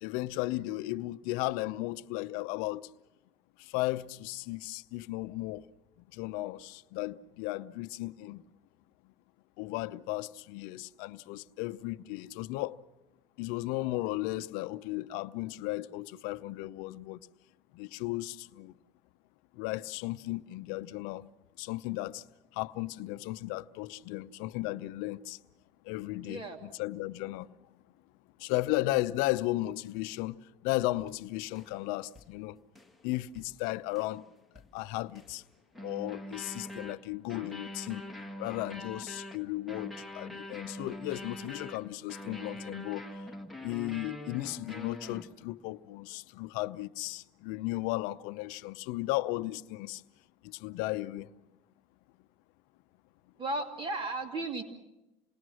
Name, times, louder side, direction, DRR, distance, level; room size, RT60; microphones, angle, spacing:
voice 1, 0.0-2.9 3.6-5.6 6.1-8.4 9.6-12.8 13.4-17.2 17.7-18.7 19.5-21.3 21.6-22.2 22.5-25.4 25.8-27.5 28.4-32.6 33.0-34.3 34.7-35.4 35.8-38.0 38.4-43.1 43.6-50.0 50.4-51.3, left 18 dB, 75° left, 0.7 m, -35 dB
sound 1, 31.0-31.1 31.5-31.8 32.2-32.3 32.7-33.0 33.4-33.5 33.9-34.2 34.6-35.4 35.7-45.6, left 1 dB, ahead, 1.8 m, -44 dB
voice 2, 53.4-54.6, right 2 dB, 35° right, 2.6 m, -34 dB
28.5 x 19.5 x 6.3 m
supercardioid pair, 115°, 14 cm